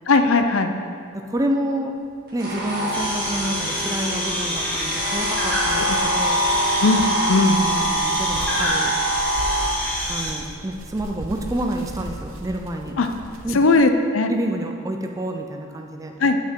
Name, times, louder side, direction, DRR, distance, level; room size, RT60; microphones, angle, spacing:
voice 1, 0.1-0.7 5.9-6.0 6.8-7.6 13.0-13.1 13.5-14.3 16.2-16.4, left 3 dB, 65° left, 7 dB, 0.5 m, -18 dB
voice 2, 1.1-1.9 2.3-6.4 7.6-8.9 10.1-12.9 13.4-13.6 14.3-16.1, right 1 dB, 15° right, 3 dB, 0.4 m, -28 dB
sound 1, 2.4-9.7, right 1 dB, 40° right, 1.7 m, -24 dB
sound 2, 2.9-10.3, equal, 10° left, 1.0 m, -27 dB
sound 3, 4.6-13.8, right 1 dB, 70° right, 0.8 m, -38 dB
8.0 x 5.7 x 4.5 m, 2.3 s
head